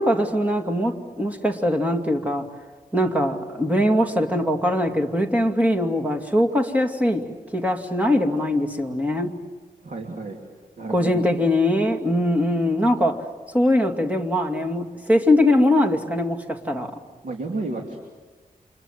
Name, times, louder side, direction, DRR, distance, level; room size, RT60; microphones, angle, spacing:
voice 1, 0.0-2.5 2.9-7.2 7.5-9.3 10.9-13.2 13.5-16.9, left 1 dB, 10° right, 2 dB, 2.5 m, -21 dB
voice 2, 9.8-10.4 10.8-11.3 17.2-18.0, right 3 dB, 60° right, 2 dB, 3.0 m, -31 dB
29.5 x 26.5 x 7.6 m, 1.3 s
wide cardioid pair, 130°, 15 cm